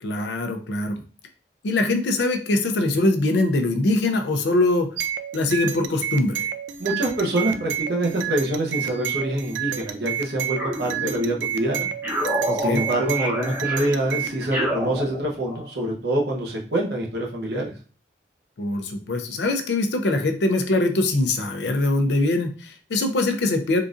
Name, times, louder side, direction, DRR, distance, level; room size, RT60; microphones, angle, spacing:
voice 1, 0.0-1.0 1.6-4.9 5.3-6.5 12.5-12.8 18.6-23.8, left 2 dB, 75° left, 6 dB, 0.5 m, -22 dB
sound 1, 5.0-14.4, right 9 dB, 80° right, 0.3 m, -30 dB
voice 2, 6.8-11.9 12.6-17.7, right 1 dB, 65° right, -1 dB, 0.8 m, -25 dB
sound 2, 10.6-11.5 12.0-15.7, equal, 10° right, 0.8 m, -29 dB
3.7 x 2.5 x 2.4 m, 0.38 s
head